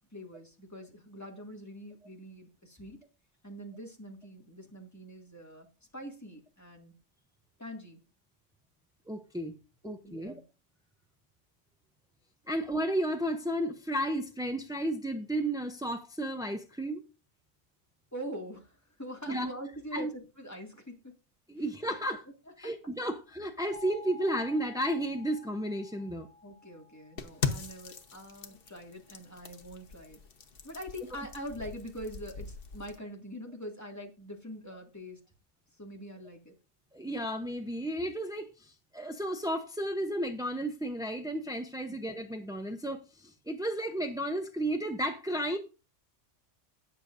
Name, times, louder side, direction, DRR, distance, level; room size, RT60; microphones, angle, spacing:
voice 1, 0.1-3.0 3.4-5.7 5.9-6.9 7.6-8.0 9.8-10.4 18.1-21.1 22.6-22.7 26.4-30.2 30.6-35.2 35.8-36.5 41.9-42.0, equal, 15° left, 1 dB, 2.1 m, -44 dB
voice 2, 9.1-9.6 9.8-10.4 12.5-17.0 19.3-19.5 19.9-20.1 21.5-22.2 22.6-26.3 36.9-45.6, right 1 dB, 5° right, 6 dB, 0.4 m, -33 dB
sound 1, 23.7-28.4, left 2 dB, 50° right, 3.3 m, -52 dB
sound 2, 27.2-33.0, left 6 dB, 50° left, 1.1 m, -40 dB
18.0 x 6.7 x 2.6 m, 0.31 s
omnidirectional pair, 1.2 m